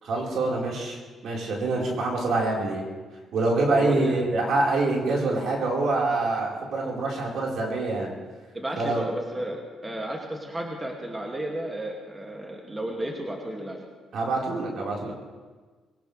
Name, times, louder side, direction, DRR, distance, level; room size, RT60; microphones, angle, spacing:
voice 1, 0.0-2.8 3.3-8.1 8.8-9.1 14.1-15.1, right 2 dB, 70° right, -3 dB, 4.6 m, -25 dB
voice 2, 3.8-4.2 8.5-13.8, right 1 dB, 15° right, 0 dB, 2.3 m, -33 dB
21.5 x 18.5 x 3.4 m, 1.4 s
cardioid pair, 90°, 0 cm